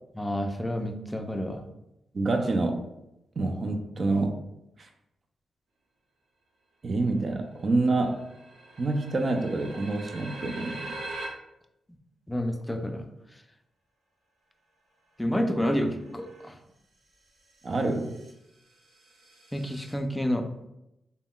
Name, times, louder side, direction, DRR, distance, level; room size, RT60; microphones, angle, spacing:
voice 1, 0.2-1.6 12.3-13.0 15.2-16.6 19.5-20.4, equal, 10° left, 5 dB, 0.4 m, -29 dB
voice 2, 2.1-2.8 3.4-4.4 4.8-4.9 6.8-8.3 8.8-10.9 17.6-18.1, right 2 dB, 50° right, 4 dB, 0.4 m, -27 dB
sound 1, 7.2-7.3 7.5-11.2 15.5-16.4 17.3-20.0, right 2 dB, 90° right, 0.9 m, -43 dB
3.5 x 2.1 x 2.3 m, 0.88 s
supercardioid pair, 50°, 0 cm